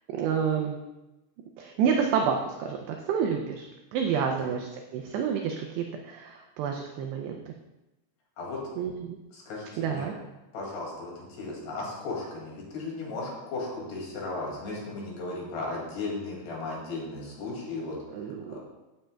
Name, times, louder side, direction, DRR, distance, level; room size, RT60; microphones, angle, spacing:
voice 1, 0.1-0.8 1.6-7.5 8.8-9.2 9.8-10.1 18.1-18.6, right 7 dB, 85° right, 3 dB, 2.4 m, -29 dB
voice 2, 9.3-10.1 10.5-18.0 18.5-18.6, left 3 dB, 65° left, -3 dB, 4.0 m, -36 dB
15.5 x 7.3 x 2.3 m, 1.0 s
omnidirectional pair, 5.5 m